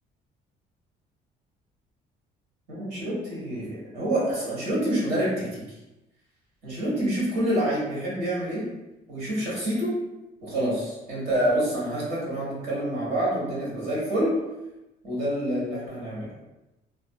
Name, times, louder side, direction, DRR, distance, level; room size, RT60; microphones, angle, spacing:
voice 1, 2.7-5.6 6.6-8.7 9.1-9.9 10.4-14.4 15.0-16.3, right 1 dB, 60° right, -7 dB, 1.4 m, -27 dB
2.4 x 2.4 x 2.3 m, 0.98 s
cardioid pair, 110°, 17 cm